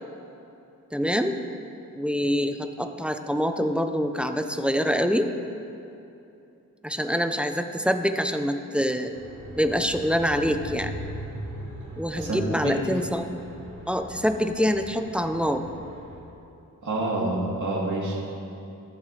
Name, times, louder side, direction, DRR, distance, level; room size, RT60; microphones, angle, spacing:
voice 1, 0.9-1.3 1.9-5.3 6.8-9.1 9.6-10.9 12.0-13.3 13.9-15.6, equal, 5° right, 7 dB, 0.6 m, -25 dB
sound 1, 9.1-16.2, right 1 dB, 90° right, 2.3 m, -40 dB
voice 2, 12.1-12.7 16.8-18.3, right 2 dB, 60° right, -4 dB, 2.8 m, -28 dB
21.5 x 7.2 x 3.4 m, 2.7 s
wide cardioid pair, 85°, 33 cm